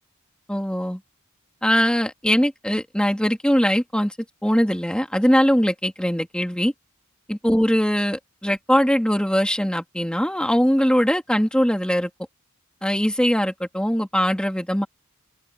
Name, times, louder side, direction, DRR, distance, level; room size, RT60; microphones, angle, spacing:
voice 1, 0.5-1.0 1.6-4.1 4.4-6.7 7.3-12.1 12.8-14.9, equal, 5° left, 2.8 m, -21 dB
open air
head